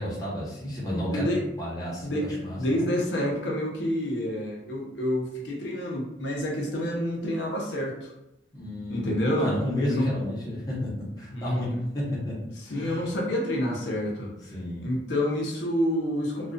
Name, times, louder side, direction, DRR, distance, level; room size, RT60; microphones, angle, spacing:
voice 1, 0.0-1.3 1.6-2.9 8.5-9.1 9.4-10.9 11.2-11.7 11.9-12.3 12.7-13.0 14.5-14.9, left 1 dB, 20° left, -7 dB, 0.7 m, -31 dB
voice 2, 0.8-1.4 2.0-8.1 8.9-9.6 9.9-10.1 11.3-11.9 12.7-14.3 14.8-16.5, equal, 80° left, -1 dB, 0.7 m, -28 dB
2.5 x 2.3 x 2.2 m, 0.87 s
head